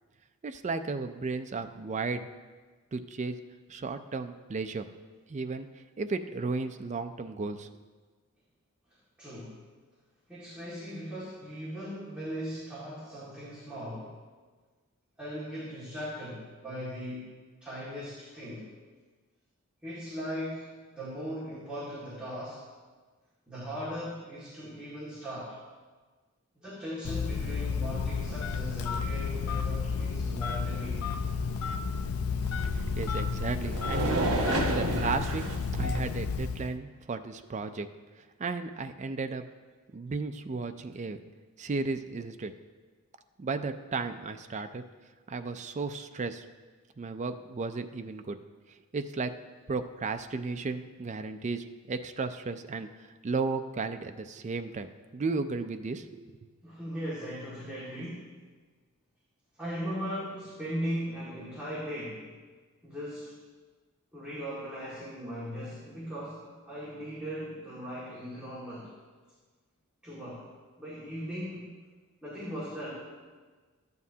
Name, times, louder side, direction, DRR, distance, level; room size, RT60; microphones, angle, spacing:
voice 1, 0.4-2.3 2.9-3.4 3.7-4.8 5.3-5.7 6.0-7.7 32.6-34.3 34.7-35.4 35.7-37.9 38.4-39.4 39.9-41.2 41.6-42.5 43.4-44.8 45.3-46.4 47.0-48.4 48.9-49.3 49.7-52.9 53.2-56.3, right 4 dB, 30° right, 7 dB, 0.4 m, -34 dB
voice 2, 9.2-9.6 10.3-14.2 15.2-17.4 17.6-18.7 19.8-22.6 23.5-25.6 26.6-31.0 56.6-58.4 59.6-62.3 62.8-63.3 64.1-68.9 70.0-70.5 70.8-71.7 72.2-73.1, equal, 5° right, -10 dB, 2.0 m, -38 dB
Telephone, 27.0-36.7, left 5 dB, 80° left, 0.5 m, -32 dB
sound 1, 32.4-36.2, right 2 dB, 75° right, 1.2 m, -32 dB
13.5 x 9.4 x 2.8 m, 1.4 s
head